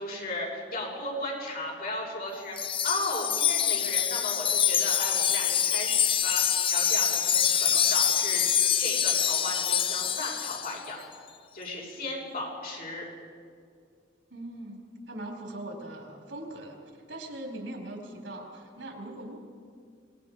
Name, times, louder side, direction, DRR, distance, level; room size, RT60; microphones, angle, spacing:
voice 1, 0.0-8.4 8.8-11.0 11.5-13.0, left 2 dB, 50° left, -3 dB, 6.2 m, -35 dB
Wind chime, 2.6-10.8, left 9 dB, 30° left, 0.5 m, -25 dB
voice 2, 14.3-16.8 17.1-19.4, right 1 dB, 80° right, 0 dB, 4.5 m, -40 dB
26.0 x 20.5 x 5.1 m, 2.2 s
head